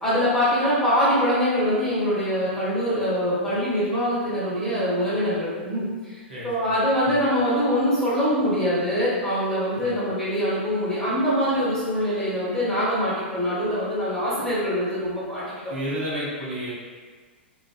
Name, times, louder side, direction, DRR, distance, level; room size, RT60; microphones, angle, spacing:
voice 1, 0.0-6.2 6.4-15.4, equal, 5° left, -12 dB, 1.3 m, -23 dB
voice 2, 6.3-6.7 7.1-7.2 9.8-10.1 15.7-16.7, equal, 65° right, -7 dB, 0.9 m, -31 dB
3.2 x 2.4 x 2.2 m, 1.5 s
figure-of-eight pair, 105°, 6 cm